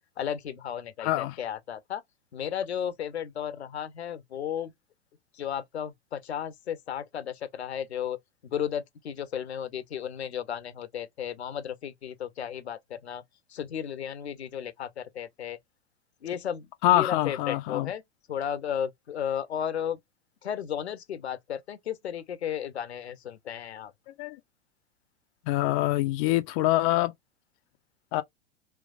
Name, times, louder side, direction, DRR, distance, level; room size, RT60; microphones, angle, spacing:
voice 1, 0.2-2.0 2.3-4.7 5.3-13.2 13.5-15.6 16.2-18.0 18.3-20.0 20.4-23.9, left 9 dB, 75° left, 0.7 m, -34 dB
voice 2, 1.0-1.4 16.8-17.9 24.2-24.4 25.5-27.1 28.1-28.2, left 15 dB, 35° left, 0.4 m, -25 dB
3.3 x 3.0 x 2.4 m
figure-of-eight pair, 95°, 33 cm